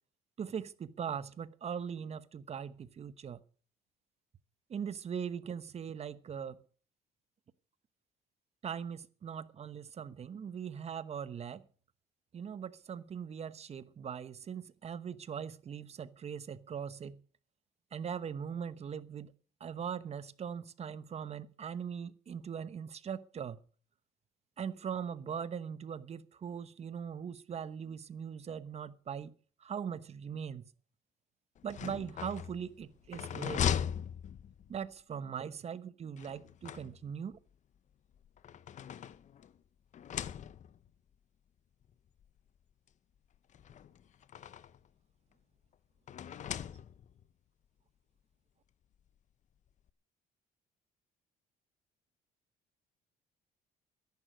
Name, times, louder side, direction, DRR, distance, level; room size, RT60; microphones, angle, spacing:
voice 1, 0.4-3.4 4.7-6.6 8.6-11.6 12.3-17.2 17.9-19.3 19.6-23.6 24.6-29.3 29.6-30.7 31.6-33.7 34.7-37.4, right 7 dB, 40° right, 1.0 m, -40 dB
sound 1, 31.5-34.9 36.2-37.3 38.2-39.6 39.9-40.9 41.8-41.9 42.2-42.3 43.5-44.9 46.1-47.2, left 9 dB, 45° left, 0.7 m, -39 dB
13.5 x 11.0 x 6.2 m
cardioid pair, 110°, 17 cm